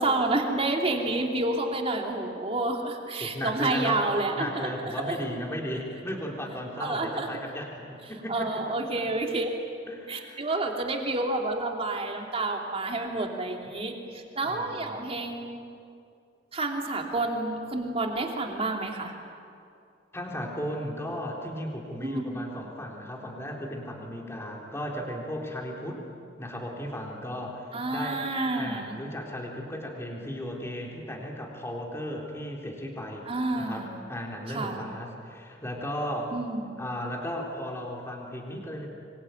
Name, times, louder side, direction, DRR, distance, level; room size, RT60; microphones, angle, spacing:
voice 1, 0.0-5.2 6.8-7.3 8.3-9.5 10.1-15.6 16.5-19.1 22.0-22.4 25.8-26.0 27.7-29.0 33.3-34.0 34.5-34.8 36.3-36.8, right 2 dB, 35° right, 2 dB, 3.1 m, -29 dB
voice 2, 3.2-4.1 4.4-8.7 9.0-9.1 9.9-10.4 14.4-15.0 20.1-26.0 26.4-28.2 28.5-33.3 33.6-36.3 36.8-38.9, equal, 15° left, -1 dB, 3.9 m, -35 dB
26.5 x 23.0 x 9.4 m, 2.4 s
head